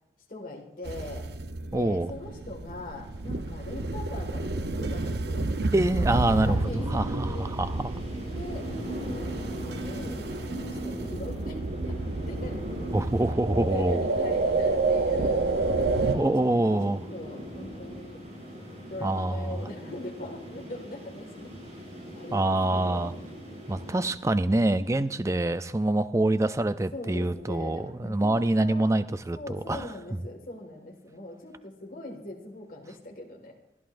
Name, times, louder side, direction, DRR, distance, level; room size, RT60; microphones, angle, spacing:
voice 1, 0.3-1.3 1.7-5.5 6.0-7.5 8.3-12.6 13.6-16.5 16.8-18.2 18.9-21.5 22.2-23.1 26.9-28.9 29.3-33.6, left 2 dB, 50° left, 0 dB, 1.8 m, -41 dB
sound 1, 0.8-16.2, right 3 dB, 65° right, 0.7 m, -30 dB
voice 2, 1.7-2.1 5.7-7.9 12.9-14.0 16.1-17.0 19.0-19.7 22.3-23.1 23.7-29.9 30.1-30.2, right 1 dB, 15° right, 12 dB, 0.4 m, -26 dB
sound 2, 6.1-24.1, equal, 40° right, 5.6 m, -40 dB
24.5 x 11.0 x 2.6 m, 0.89 s
head